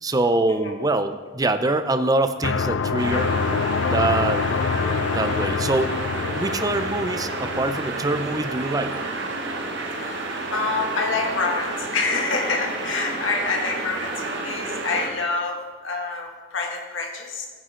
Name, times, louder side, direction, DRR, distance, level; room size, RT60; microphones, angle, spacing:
voice 1, 0.0-3.3 3.9-4.4 5.1-5.9 6.4-8.9, right 2 dB, 20° right, 10 dB, 0.6 m, -24 dB
sound 1, 2.4-9.2, left 5 dB, 70° left, 0.4 m, -26 dB
sound 2, 3.0-15.1, right 2 dB, 65° right, 1.7 m, -30 dB
voice 2, 9.9-15.6 15.8-17.5, left 3 dB, 90° left, 1 dB, 1.8 m, -27 dB
15.5 x 9.7 x 3.8 m, 1.4 s
head